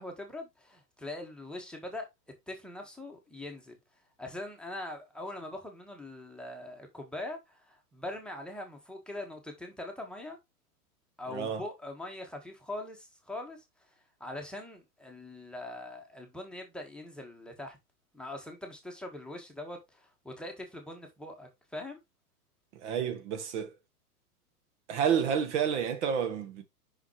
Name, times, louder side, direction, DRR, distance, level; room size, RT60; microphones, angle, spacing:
voice 1, 0.0-2.1 2.5-3.8 4.2-10.4 11.2-13.6 14.2-17.8 18.1-22.0, left 1 dB, ahead, 1.4 m, -42 dB
voice 2, 11.3-11.6 22.7-23.7 24.9-26.6, right 7 dB, 50° right, 1.4 m, -30 dB
5.9 x 5.8 x 3.1 m
hypercardioid pair, 110°, 46 cm